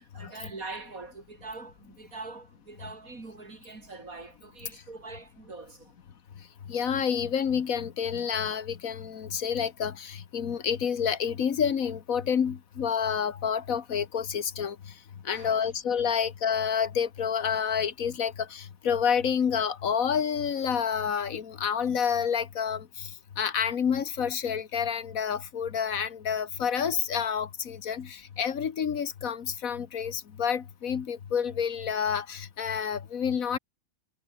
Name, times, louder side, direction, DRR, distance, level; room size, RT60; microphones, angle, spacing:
voice 1, 0.0-6.0 15.3-15.7 16.0-16.1, right 3 dB, 75° right, 4.1 m, -43 dB
voice 2, 6.7-14.9 15.2-33.6, left 7 dB, 70° left, 1.7 m, -29 dB
omnidirectional pair, 1.5 m